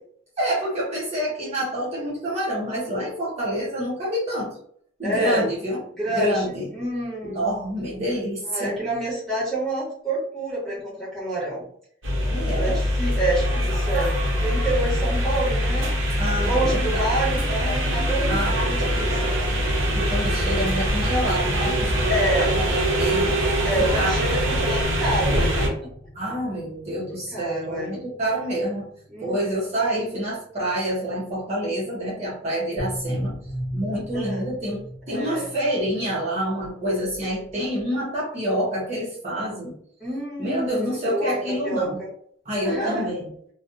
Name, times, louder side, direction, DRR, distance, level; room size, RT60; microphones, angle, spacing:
voice 1, 0.4-4.6 5.0-5.8 6.1-6.7 7.2-8.8 12.3-12.8 16.2-17.4 18.3-19.3 19.9-23.3 23.8-24.1 26.1-28.9 29.2-33.4 33.7-39.8 40.4-42.0 42.5-43.3, equal, 35° right, -7 dB, 0.9 m, -27 dB
voice 2, 5.0-5.5 6.0-7.4 8.4-11.7 12.5-15.9 16.4-19.3 22.1-22.6 23.6-25.9 27.3-28.0 29.1-29.6 34.1-34.5 35.1-35.5 40.0-42.1 42.6-43.1, right 1 dB, ahead, -8 dB, 1.2 m, -28 dB
sound 1, 12.0-25.7, equal, 65° right, 0.8 m, -23 dB
sound 2, 24.5-30.8 32.8-37.8, equal, 80° left, 0.8 m, -38 dB
2.4 x 2.3 x 2.6 m, 0.63 s
head